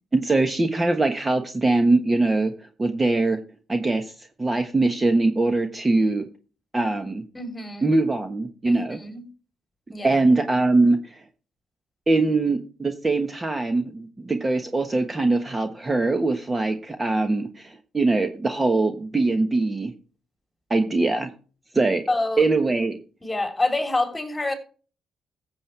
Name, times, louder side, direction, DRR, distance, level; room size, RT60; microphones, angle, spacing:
voice 1, 0.1-3.4 3.7-6.2 6.7-7.2 7.8-9.0 10.0-11.2 12.1-19.9 20.7-21.3 21.7-22.0 22.4-23.0, right 2 dB, 20° right, 1.3 m, -22 dB
voice 2, 7.3-7.9 8.6-9.2 9.9-10.2 22.1-22.4 23.2-24.5, left 2 dB, 15° left, 3.5 m, -27 dB
15.0 x 7.4 x 3.4 m
cardioid pair, 90°, 0 cm